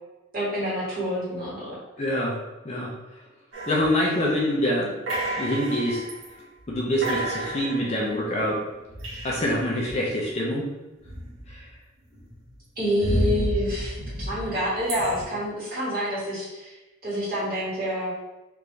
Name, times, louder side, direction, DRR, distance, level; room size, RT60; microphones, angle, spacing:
voice 1, 0.3-1.8 12.8-16.7 17.0-18.1, equal, 45° right, -8 dB, 1.5 m, -28 dB
voice 2, 2.0-2.4 2.6-2.9 3.7-4.9 5.4-6.0 6.7-8.6 9.2-10.7 11.5-11.6, equal, 30° left, -4 dB, 0.6 m, -25 dB
sound 1, 3.5-4.5 5.1-6.3 6.6-6.8 7.0-9.7 11.0-11.7 12.1-15.2, right 1 dB, 65° right, 1.2 m, -31 dB
3.4 x 2.6 x 3.2 m, 1.0 s
head